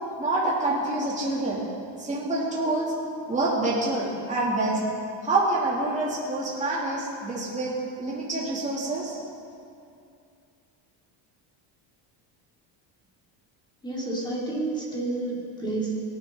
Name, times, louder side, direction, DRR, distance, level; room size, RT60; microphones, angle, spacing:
voice 1, 0.2-1.6 2.0-2.9 3.3-4.8 5.2-7.7 8.0-9.2, right 2 dB, 15° right, -6 dB, 2.7 m, -26 dB
voice 2, 13.8-15.9, right 2 dB, 10° left, -4 dB, 2.8 m, -30 dB
18.0 x 10.5 x 3.9 m, 2.5 s
cardioid pair, 135°, 46 cm